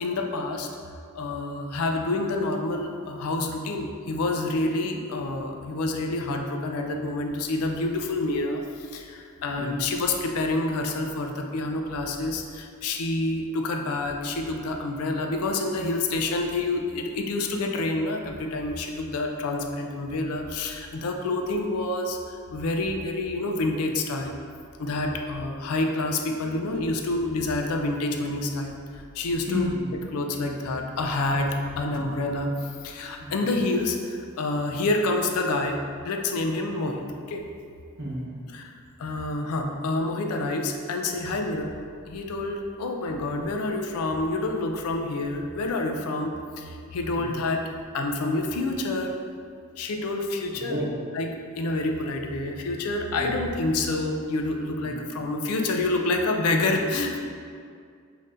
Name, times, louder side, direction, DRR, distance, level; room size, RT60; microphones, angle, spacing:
voice 1, 0.0-0.7 1.2-8.6 8.9-22.2 22.5-24.3 24.8-28.7 29.2-29.7 30.1-31.5 31.8-32.5 32.8-34.0 34.4-35.8 36.1-37.4 38.5-38.6 39.0-41.7 42.1-46.3 46.9-47.6 47.9-49.1 49.8-50.8 51.1-51.3 51.6-57.2, left 2 dB, 85° left, 3 dB, 0.4 m, -28 dB
voice 2, 29.5-29.9 31.8-31.9 33.2-33.4 38.0-38.4 47.1-47.3 50.6-50.9 53.1-53.3 54.8-55.0, left 1 dB, 55° right, -6 dB, 1.0 m, -32 dB
5.4 x 2.7 x 2.5 m, 2.2 s
head